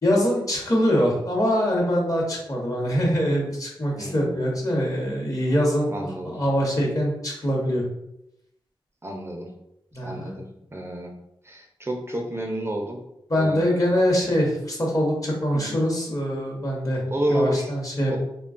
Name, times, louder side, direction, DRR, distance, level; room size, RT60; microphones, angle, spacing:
voice 1, 0.0-5.9 6.2-7.8 9.9-10.3 13.3-17.0 17.3-18.2, equal, 40° left, -2 dB, 0.9 m, -23 dB
voice 2, 3.9-4.3 5.9-6.4 9.0-9.5 10.0-11.1 11.4-13.0 13.4-14.2 15.5-15.8 17.1-17.7 18.1-18.2, right 1 dB, 25° right, 1 dB, 0.4 m, -30 dB
3.4 x 2.2 x 2.4 m, 0.83 s
wide cardioid pair, 80°, 9 cm